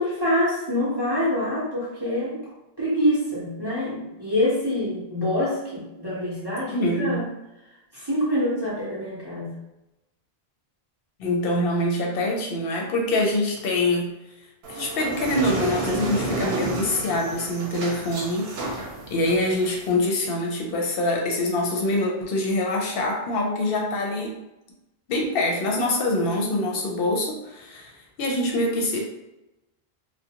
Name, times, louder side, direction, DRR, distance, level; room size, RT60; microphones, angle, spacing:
voice 1, 0.0-2.4 2.8-7.2 7.9-9.5, left 1 dB, 30° right, -8 dB, 0.6 m, -25 dB
voice 2, 6.7-7.2 11.2-14.1 14.7-24.4 25.1-27.9 28.2-29.0, left 1 dB, 70° left, 0 dB, 0.7 m, -25 dB
sound 1, 14.6-19.9, right 2 dB, 80° right, 0.8 m, -31 dB
2.4 x 2.0 x 2.8 m, 0.96 s
omnidirectional pair, 1.0 m